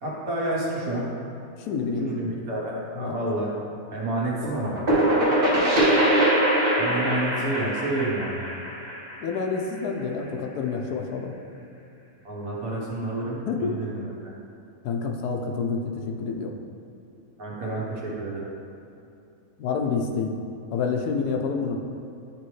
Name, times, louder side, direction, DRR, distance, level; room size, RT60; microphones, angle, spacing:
voice 1, 0.0-1.1 2.0-3.5 3.9-4.8 6.8-8.4 12.2-14.3 17.4-18.5, right 2 dB, 60° right, -5 dB, 1.6 m, -29 dB
voice 2, 1.6-2.4 3.0-3.2 5.6-5.7 6.9-7.0 9.2-11.3 13.4-13.8 14.8-16.5 19.6-20.3 20.7-21.8, left 5 dB, 75° left, 3 dB, 1.1 m, -28 dB
sound 1, 4.4-10.0, right 1 dB, 40° right, 1.2 m, -23 dB
10.0 x 3.5 x 3.1 m, 2.6 s
omnidirectional pair, 1.7 m